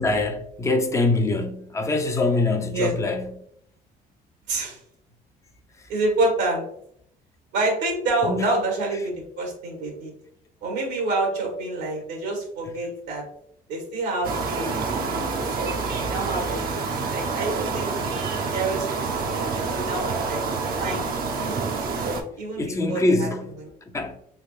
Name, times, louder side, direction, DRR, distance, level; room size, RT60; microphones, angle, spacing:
voice 1, 0.0-3.3 8.3-8.5 22.6-23.6 23.9-24.2, left 2 dB, 15° left, 0.5 m, -23 dB
voice 2, 4.5-4.8 5.9-6.6 7.5-10.1 10.6-13.2 13.7-16.8 17.1-17.9 18.5-20.4 20.8-21.1 21.4-21.6 22.0-23.3 23.6-23.7, right 2 dB, 85° right, 1.1 m, -28 dB
sound 1, 14.2-22.2, right 4 dB, 60° right, 0.6 m, -27 dB
3.4 x 2.9 x 2.3 m
cardioid pair, 110°, 17 cm